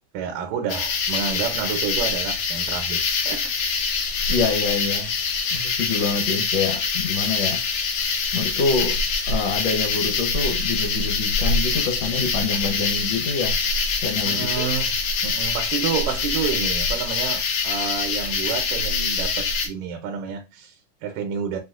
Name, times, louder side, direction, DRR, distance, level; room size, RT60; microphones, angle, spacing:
voice 1, 0.1-3.5 14.3-15.0 15.2-21.6, right 6 dB, 80° right, 2.2 m, -29 dB
sound 1, 0.7-19.7, left 4 dB, 90° left, 1.2 m, -24 dB
voice 2, 4.3-5.1 5.5-7.6 8.3-9.0 9.3-13.6 14.0-14.7, left 4 dB, 70° left, 1.6 m, -26 dB
7.5 x 2.7 x 2.4 m
omnidirectional pair, 3.9 m